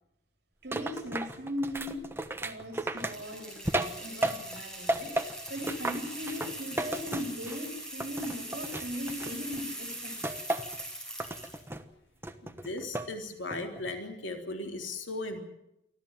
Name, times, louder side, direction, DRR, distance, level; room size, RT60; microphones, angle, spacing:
voice 1, 0.6-2.0 2.4-5.1 5.5-10.3, left 1 dB, 55° right, 4 dB, 3.8 m, -38 dB
sound 1, 0.7-4.6 4.9-7.7 8.0-9.6 10.2-10.8 11.2-11.8 12.2-13.1 13.5-13.9, right 1 dB, 10° right, 1.1 m, -34 dB
sound 2, 3.0-11.7, right 1 dB, 5° left, 5.8 m, -42 dB
voice 2, 12.4-15.4, left 2 dB, 85° left, 4 dB, 3.5 m, -37 dB
24.5 x 15.0 x 9.2 m, 0.82 s
head